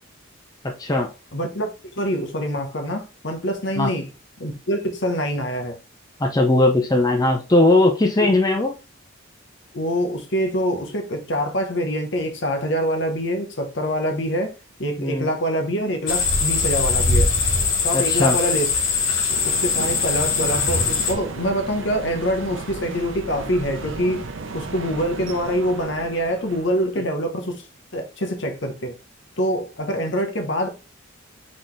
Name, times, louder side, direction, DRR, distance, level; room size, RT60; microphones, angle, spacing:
voice 1, 0.6-1.1 3.8-3.9 6.2-8.7 15.0-15.3 17.9-18.4, left 2 dB, 20° left, 0.5 m, -19 dB
voice 2, 1.3-4.1 4.4-5.8 9.7-14.5 14.8-17.3 17.8-18.7 19.4-24.3 24.5-27.7 27.9-28.9 29.4-30.7, equal, 60° left, 1.0 m, -25 dB
sound 1, 16.1-21.1, left 4 dB, 80° left, 1.3 m, -21 dB
sound 2, 19.3-27.0, right 3 dB, 70° right, 0.7 m, -35 dB
4.1 x 3.9 x 3.2 m
head